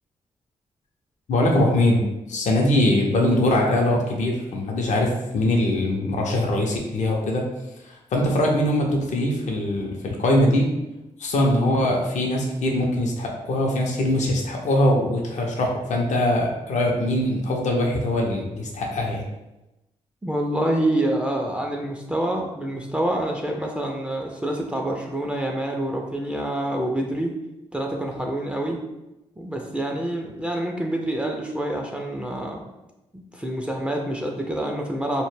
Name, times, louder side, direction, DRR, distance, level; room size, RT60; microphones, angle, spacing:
voice 1, 1.3-7.4 7.9-10.7 11.2-19.2, left 1 dB, 60° left, 0 dB, 0.5 m, -22 dB
voice 2, 20.2-27.4 27.7-28.8 29.4-32.6 33.1-35.3, right 1 dB, 10° right, 1 dB, 0.4 m, -27 dB
2.1 x 2.0 x 3.1 m, 0.96 s
supercardioid pair, 40°, 14 cm